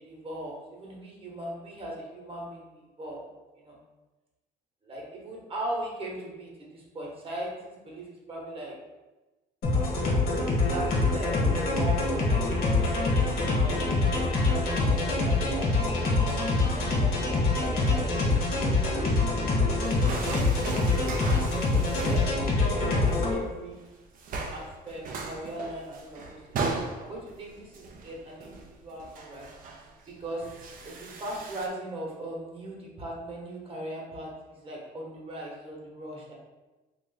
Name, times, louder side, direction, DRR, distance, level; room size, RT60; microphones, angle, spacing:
voice 1, 0.0-3.2 3.6-3.8 4.8-8.7 10.6-14.1 14.5-18.1 18.5-19.2 19.8-21.1 21.9-24.0 24.5-26.6 27.0-29.6 30.2-30.5 30.8-36.3, right 1 dB, 35° right, -3 dB, 1.1 m, -39 dB
sound 1, 9.6-23.3, left 3 dB, 60° left, 1.1 m, -25 dB
sound 2, 19.8-22.4 22.7-23.2 23.6-23.9 24.2-31.7, right 3 dB, 55° right, 0.5 m, -37 dB
3.1 x 2.5 x 4.0 m, 1.1 s
cardioid pair, 110°, 17 cm